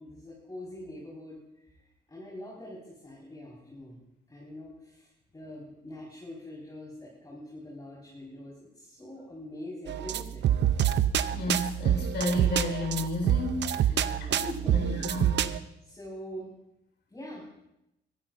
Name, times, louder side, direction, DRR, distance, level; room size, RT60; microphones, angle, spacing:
voice 1, 0.0-1.4 2.1-3.9 4.3-10.4 13.9-15.0 15.8-16.5 17.1-17.4, left 1 dB, 20° left, -5 dB, 5.0 m, -44 dB
sound 1, 9.9-15.6, right 10 dB, 65° right, 0.6 m, -27 dB
voice 2, 11.3-14.0 14.4-15.5, left 2 dB, 70° left, 2 dB, 4.5 m, -32 dB
21.5 x 14.0 x 2.6 m, 0.86 s
cardioid pair, 105°, 19 cm